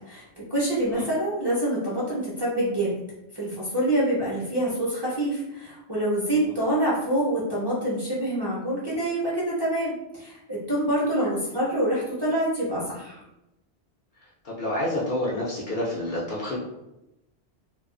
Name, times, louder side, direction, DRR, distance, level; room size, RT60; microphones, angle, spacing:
voice 1, 0.1-2.9 3.3-13.2, right 1 dB, 25° right, -8 dB, 0.7 m, -26 dB
voice 2, 14.4-16.6, left 1 dB, 55° left, -6 dB, 0.7 m, -28 dB
2.3 x 2.3 x 2.4 m, 0.91 s
omnidirectional pair, 1.1 m